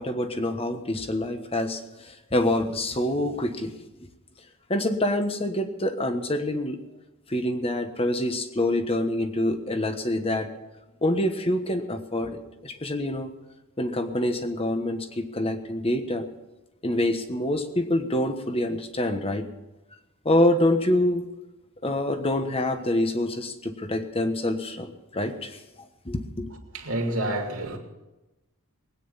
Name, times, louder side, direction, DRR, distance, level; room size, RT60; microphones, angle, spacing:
voice 1, 0.0-1.8 2.1-3.7 4.7-6.8 7.3-10.5 11.0-13.3 13.8-16.3 16.8-19.5 20.2-21.3 21.8-25.6 26.0-26.5, left 1 dB, 25° left, 1.2 m, -26 dB
voice 2, 26.7-27.8, right 1 dB, 70° right, 2.8 m, -28 dB
21.0 x 9.4 x 5.6 m
head